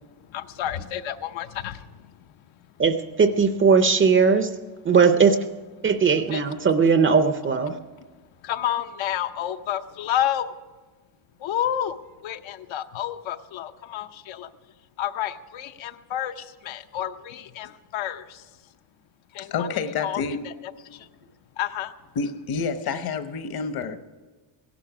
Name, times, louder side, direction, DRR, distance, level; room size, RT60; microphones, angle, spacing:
voice 1, 0.3-1.8 6.3-6.4 8.5-10.5 11.4-12.0 12.2-14.5 15.0-16.3 16.7-18.2 19.4-19.7 20.0-20.5 21.6-21.9, left 11 dB, 70° left, 9 dB, 0.8 m, -29 dB
voice 2, 2.8-4.5 4.9-5.4 5.8-7.7, right 5 dB, 25° right, 9 dB, 0.5 m, -19 dB
voice 3, 19.4-20.5 22.1-24.0, left 5 dB, 50° left, 10 dB, 1.0 m, -28 dB
16.5 x 11.5 x 6.0 m, 1.3 s
cardioid pair, 170°, 48 cm